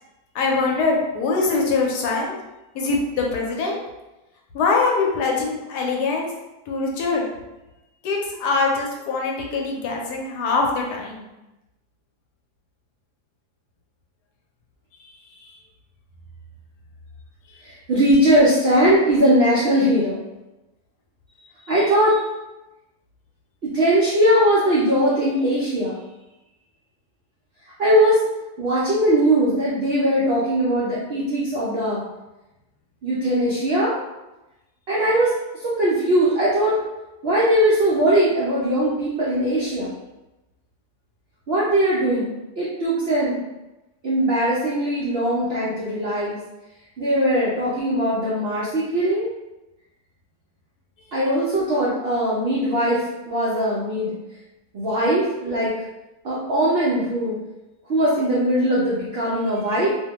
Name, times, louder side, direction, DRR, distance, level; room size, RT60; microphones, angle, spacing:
voice 1, 0.3-2.4 2.7-3.8 4.5-6.3 6.7-7.2 8.0-11.3 15.4-15.5, left 3 dB, 80° left, 0 dB, 1.2 m, -23 dB
voice 2, 17.6-20.2 21.7-22.3 23.6-26.0 27.8-28.2 28.6-32.0 33.0-34.0 34.9-36.8 37.2-39.9 41.5-43.4 44.0-46.4 47.0-49.3 51.1-54.1 54.7-55.7 56.2-57.4 57.9-59.9, right 1 dB, 75° right, -7 dB, 0.5 m, -20 dB
2.8 x 2.1 x 2.9 m, 1.0 s
omnidirectional pair, 1.8 m